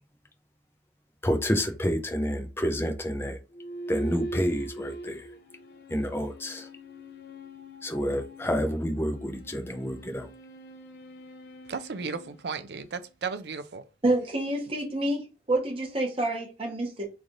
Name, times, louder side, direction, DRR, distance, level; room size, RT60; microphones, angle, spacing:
voice 1, 1.2-3.4 3.9-5.3 5.9-6.7 7.8-10.3, equal, 15° left, 0.5 m, -29 dB
sound 1, 3.5-13.2, right 1 dB, 60° left, 0.5 m, -42 dB
voice 2, 11.7-13.8, right 5 dB, 70° right, 0.5 m, -35 dB
voice 3, 14.0-17.1, right 2 dB, 30° right, 1.0 m, -28 dB
3.2 x 2.6 x 3.7 m
head